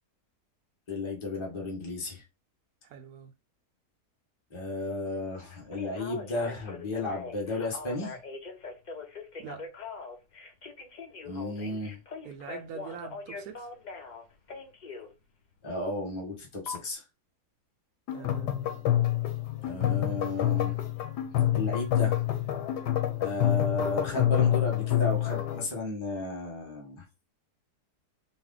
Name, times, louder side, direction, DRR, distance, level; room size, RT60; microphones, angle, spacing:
voice 1, 0.9-2.2 4.5-8.2 11.3-12.0 15.6-17.0 19.6-20.8 21.5-22.2 23.2-27.0, left 2 dB, 20° left, 1.0 m, -33 dB
voice 2, 2.9-3.3 9.4-9.7 12.2-13.7 18.1-18.5, right 7 dB, 75° right, 1.1 m, -43 dB
Telephone, 5.5-15.1 16.7-16.8, left 4 dB, 60° left, 0.4 m, -42 dB
sound 1, 18.1-25.7, left 12 dB, 85° left, 1.4 m, -27 dB
4.1 x 2.1 x 3.9 m
omnidirectional pair, 1.7 m